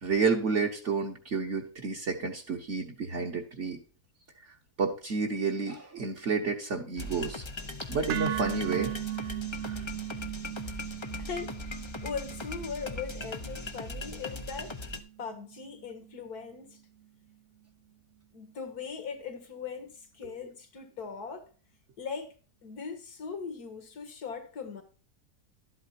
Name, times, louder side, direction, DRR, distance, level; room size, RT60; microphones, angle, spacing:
voice 1, 0.0-3.8 4.8-7.4 7.9-8.9 9.6-9.8, right 4 dB, 50° right, 1.5 m, -30 dB
sound 1, 7.0-15.0, left 2 dB, 30° left, 0.5 m, -40 dB
sound 2, 8.1-16.2, right 13 dB, 70° right, 1.0 m, -38 dB
voice 2, 11.2-11.6 12.0-14.8 15.2-16.8 18.3-21.5 22.0-22.4 22.6-24.8, left 5 dB, 70° left, 2.1 m, -39 dB
12.0 x 8.5 x 2.7 m
omnidirectional pair, 1.7 m